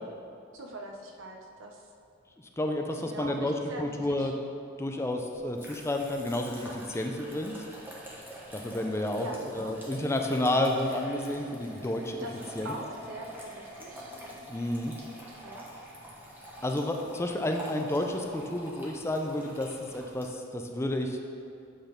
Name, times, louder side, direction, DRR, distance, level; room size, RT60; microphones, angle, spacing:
voice 1, 0.5-1.8 2.9-4.3 9.1-9.8 12.2-14.1 15.4-15.7, right 1 dB, 75° right, 1 dB, 0.8 m, -42 dB
voice 2, 2.6-4.3 4.8-7.6 8.5-9.3 9.5-12.3 12.6-12.7 14.5-14.9 16.6-21.2, left 1 dB, 15° left, 3 dB, 0.4 m, -30 dB
sound 1, 5.3-20.3, equal, 10° right, 1.1 m, -45 dB
8.1 x 4.0 x 5.1 m, 2.5 s
head